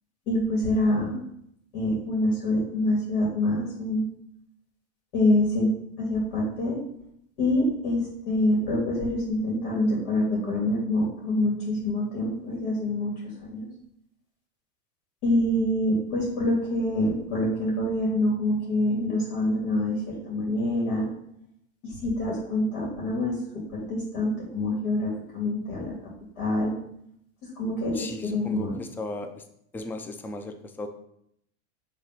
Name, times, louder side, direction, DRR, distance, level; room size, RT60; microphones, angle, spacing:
voice 1, 0.3-1.2 1.7-4.1 5.1-6.8 7.4-8.0 8.2-13.1 13.4-13.7 15.2-21.1 21.8-25.9 26.4-26.7 27.6-28.7, left 1 dB, 65° left, -4 dB, 2.4 m, -26 dB
voice 2, 27.9-29.4 29.7-30.9, left 2 dB, 5° left, 7 dB, 0.3 m, -36 dB
5.5 x 3.4 x 5.7 m, 0.74 s
supercardioid pair, 115°, 37 cm